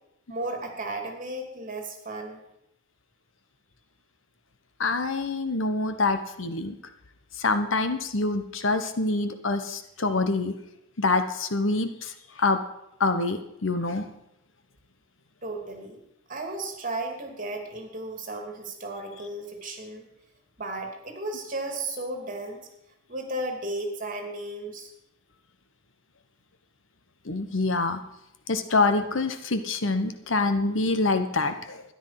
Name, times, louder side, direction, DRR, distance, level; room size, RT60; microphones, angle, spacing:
voice 1, 0.3-2.4 15.4-16.0 16.3-20.1 20.6-22.6 23.1-24.9, right 2 dB, 40° right, 3 dB, 2.7 m, -34 dB
voice 2, 4.8-6.8 7.4-10.5 11.0-12.6 13.0-14.1 27.2-28.0 28.5-31.8, left 3 dB, 70° left, 9 dB, 1.2 m, -26 dB
13.0 x 10.5 x 5.9 m, 0.83 s
head